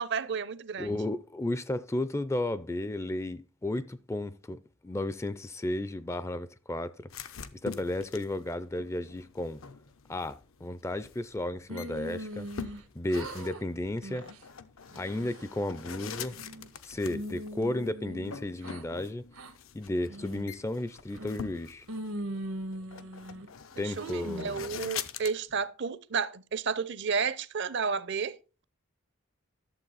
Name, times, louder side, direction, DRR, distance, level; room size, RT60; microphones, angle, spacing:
voice 1, 0.0-1.0 23.8-28.4, right 5 dB, 55° right, 0.6 m, -32 dB
voice 2, 0.8-7.1 7.5-9.6 10.1-12.5 12.9-14.3 15.0-16.4 16.8-19.2 19.7-21.9 23.8-24.8, left 1 dB, 15° left, 0.4 m, -33 dB
sound 1, 7.1-25.3, left 7 dB, 75° left, 0.7 m, -45 dB
sound 2, 11.7-12.8 13.1-13.6 14.0-14.4 14.9-15.4 16.0-16.7 17.1-18.8 19.3-19.5 20.1-20.5 21.1-21.6 21.9-23.5 24.0-24.6, right 1 dB, 90° right, 1.4 m, -40 dB
11.5 x 7.4 x 4.0 m
head